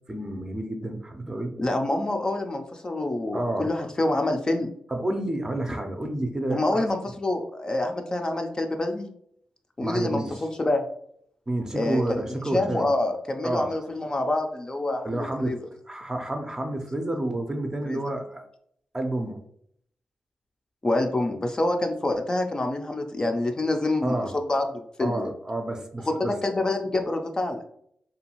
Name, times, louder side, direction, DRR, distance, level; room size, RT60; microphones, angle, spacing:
voice 1, 0.1-1.5 3.3-3.7 4.9-6.8 9.8-10.4 11.5-12.9 13.4-13.7 15.0-15.5 15.9-18.4 18.9-19.4 24.0-24.3 25.0-26.4, right 1 dB, 25° right, 4 dB, 0.5 m, -29 dB
voice 2, 1.6-4.7 6.5-9.1 9.8-10.8 11.7-12.2 12.5-15.6 17.9-18.0 20.8-24.1 24.5-25.3 26.1-27.6, left 2 dB, 30° left, 4 dB, 0.4 m, -26 dB
2.6 x 2.3 x 2.9 m, 0.68 s
cardioid pair, 55°, 3 cm